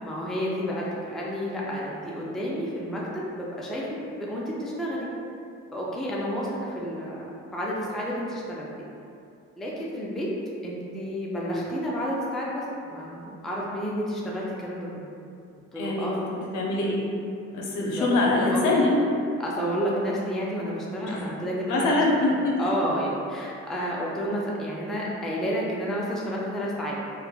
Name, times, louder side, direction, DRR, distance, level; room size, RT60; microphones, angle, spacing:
voice 1, 0.0-5.1 5.7-8.7 9.6-10.3 10.6-15.1 15.7-16.2 17.7-18.1 18.5-18.8 19.4-21.9 22.6-27.0, equal, ahead, -5 dB, 0.3 m, -30 dB
voice 2, 15.7-16.2 16.5-17.0 17.5-19.0 21.0-21.2 21.7-22.6, left 2 dB, 85° left, -2 dB, 0.6 m, -23 dB
3.1 x 2.1 x 2.3 m, 2.5 s
cardioid pair, 90°, 30 cm